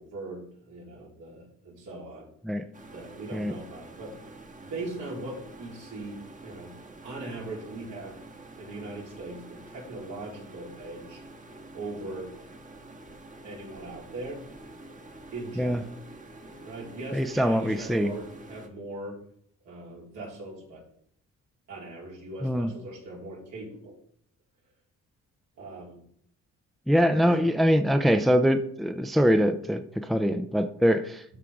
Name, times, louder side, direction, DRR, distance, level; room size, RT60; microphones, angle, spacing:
voice 1, 0.0-2.3 2.9-4.2 4.6-6.8 7.0-8.2 8.6-11.2 11.7-12.3 13.4-14.4 15.3-15.9 16.6-19.2 19.6-20.9 21.7-24.0 25.6-26.0 27.1-27.5, right 2 dB, 75° right, -4 dB, 4.1 m, -40 dB
sound 1, 2.7-18.7, right 2 dB, 25° right, 1.4 m, -48 dB
voice 2, 17.1-18.1 22.4-22.7 26.9-31.2, equal, ahead, 8 dB, 0.6 m, -23 dB
13.0 x 4.6 x 3.7 m, 0.66 s
cardioid pair, 90°, 30 cm